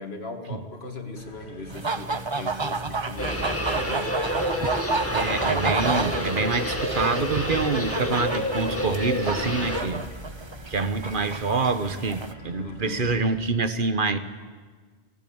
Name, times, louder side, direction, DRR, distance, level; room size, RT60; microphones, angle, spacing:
voice 1, 0.0-4.1 12.6-13.1, left 2 dB, 70° left, 4 dB, 2.6 m, -38 dB
sound 1, 1.2-13.4, left 1 dB, 40° left, 4.1 m, -45 dB
sound 2, 1.7-12.3, right 3 dB, 30° right, 0.8 m, -31 dB
sound 3, 3.2-9.8, left 1 dB, 10° left, 2.1 m, -29 dB
voice 2, 5.1-10.0 10.7-14.2, right 4 dB, 50° right, 10 dB, 1.3 m, -26 dB
28.5 x 16.0 x 8.8 m, 1.5 s
omnidirectional pair, 1.1 m